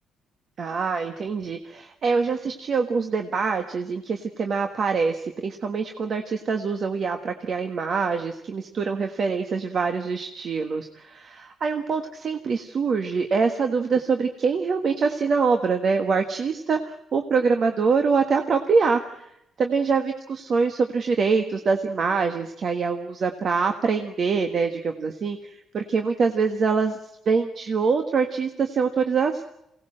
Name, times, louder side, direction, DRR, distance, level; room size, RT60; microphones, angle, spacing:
voice 1, 0.6-19.3 19.6-27.0 27.2-29.4, right 5 dB, 55° right, 5 dB, 1.5 m, -24 dB
23.5 x 18.0 x 7.7 m, 0.81 s
cardioid pair, 90°, 0 cm